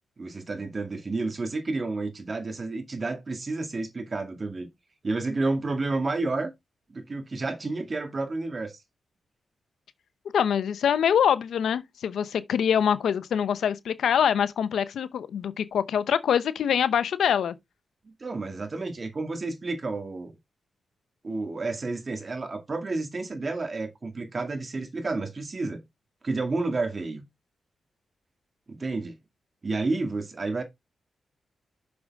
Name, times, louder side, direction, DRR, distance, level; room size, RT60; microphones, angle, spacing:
voice 1, 0.2-4.7 5.0-6.5 6.9-8.8 18.1-20.3 21.2-25.8 26.2-27.2 28.7-29.2 29.6-30.6, right 3 dB, 40° right, 2.1 m, -30 dB
voice 2, 10.3-17.5, left 8 dB, 85° left, 0.7 m, -24 dB
7.0 x 6.5 x 3.5 m
cardioid pair, 65°, 0 cm